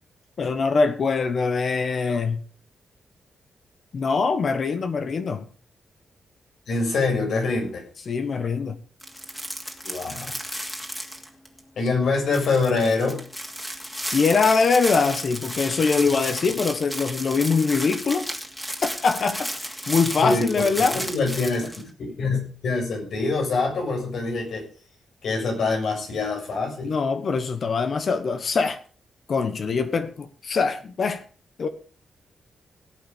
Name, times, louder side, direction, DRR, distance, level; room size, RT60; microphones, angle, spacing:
voice 1, 0.4-2.4 3.9-5.4 8.1-8.8 14.1-18.3 18.8-21.0 26.8-28.8 29.3-31.2 31.6-31.7, left 4 dB, 50° left, 1.3 m, -23 dB
voice 2, 6.7-7.8 9.8-10.4 11.8-13.3 20.2-24.7 25.2-26.9, left 3 dB, 75° left, 6.7 m, -25 dB
sound 1, 9.0-11.6 11.9-12.0 12.3-21.8, equal, 5° left, 2.6 m, -33 dB
17.5 x 8.3 x 5.4 m
cardioid pair, 115°, 0 cm